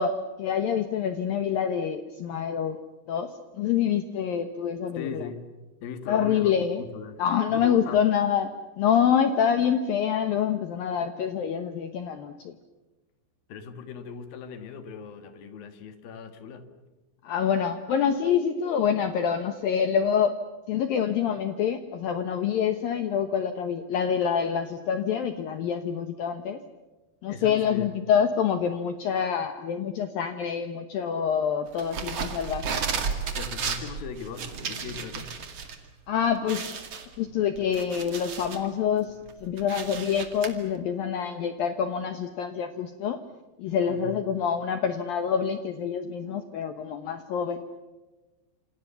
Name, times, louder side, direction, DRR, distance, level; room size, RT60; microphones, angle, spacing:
voice 1, 0.0-2.8 3.1-5.3 6.1-6.8 7.2-8.5 8.8-12.6 17.2-20.3 20.7-26.6 27.2-32.8 36.1-36.7 37.2-43.2 43.6-47.6, left 8 dB, 75° left, 8 dB, 2.1 m, -26 dB
voice 2, 4.9-5.4 5.8-6.6 6.9-7.2 7.5-8.0 13.5-16.7 27.3-28.0 33.3-35.3 43.9-44.2, left 6 dB, 60° left, 9 dB, 2.9 m, -39 dB
sound 1, 31.8-35.7 36.1-36.2 36.5-38.7 39.1-40.5, right 6 dB, 45° right, 2.3 m, -33 dB
28.0 x 28.0 x 7.0 m, 1.2 s
omnidirectional pair, 5.7 m